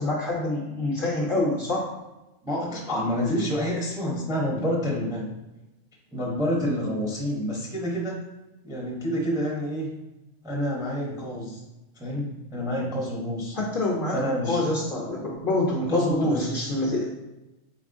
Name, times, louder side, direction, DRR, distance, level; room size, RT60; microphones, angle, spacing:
voice 1, 0.0-1.9 13.5-17.1, left 2 dB, 50° left, -3 dB, 0.7 m, -26 dB
voice 2, 2.4-5.3 6.1-8.2 8.6-9.9 10.4-11.6 12.0-13.6 14.1-14.6 15.8-16.6, equal, 5° right, -3 dB, 0.5 m, -28 dB
4.2 x 4.0 x 2.5 m, 1.0 s
omnidirectional pair, 1.4 m